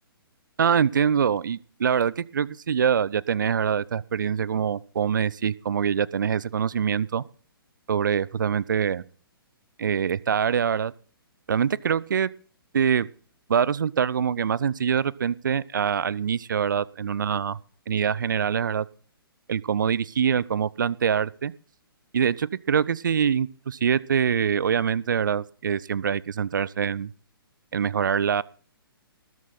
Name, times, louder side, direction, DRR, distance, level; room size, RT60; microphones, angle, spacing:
voice 1, 0.6-7.2 7.9-9.0 9.8-10.9 11.5-12.3 12.7-13.1 13.5-17.6 17.9-18.9 19.5-21.5 22.1-27.1 27.7-28.4, right 7 dB, 55° right, 22 dB, 0.7 m, -24 dB
20.0 x 7.4 x 4.3 m, 0.44 s
figure-of-eight pair, 125°, 12 cm